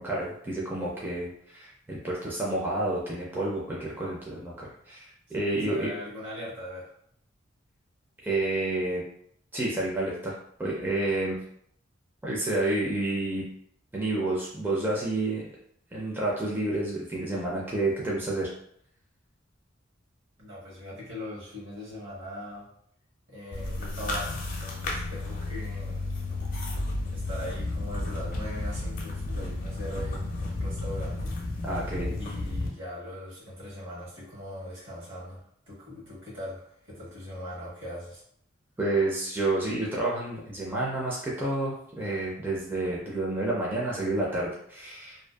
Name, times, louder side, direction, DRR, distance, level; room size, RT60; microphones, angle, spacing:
voice 1, 0.0-5.9 8.2-9.0 9.5-10.3 10.6-11.4 12.2-13.4 13.9-15.5 15.9-18.5 31.6-32.2 38.8-45.2, right 2 dB, 10° right, -6 dB, 0.4 m, -29 dB
voice 2, 5.7-6.9 20.4-22.7 23.3-26.1 27.1-31.3 32.1-38.2, left 1 dB, 65° right, -5 dB, 1.1 m, -40 dB
sound 1, 23.5-32.7, left 2 dB, 45° left, 0.5 m, -32 dB
2.5 x 2.2 x 2.2 m, 0.68 s
head